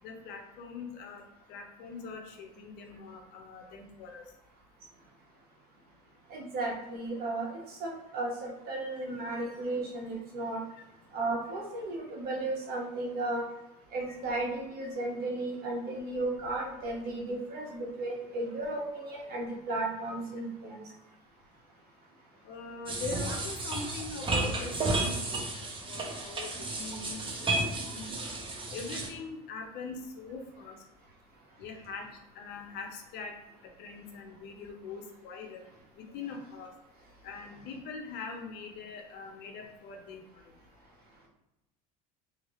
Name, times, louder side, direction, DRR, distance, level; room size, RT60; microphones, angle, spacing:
voice 1, 0.0-1.2 1.5-4.2 10.7-10.8 22.4-25.3 25.6-28.3 28.7-30.8 31.6-32.1 32.3-33.4 33.6-35.7 36.0-36.7 37.2-40.4, left 4 dB, 60° left, 3 dB, 0.7 m, -42 dB
voice 2, 6.3-10.6 11.1-13.4 13.9-20.8, right 2 dB, 55° right, -2 dB, 1.2 m, -34 dB
sound 1, 22.9-29.1, right 2 dB, 25° right, 0.8 m, -33 dB
2.8 x 2.7 x 3.0 m, 0.93 s
supercardioid pair, 85°, 19 cm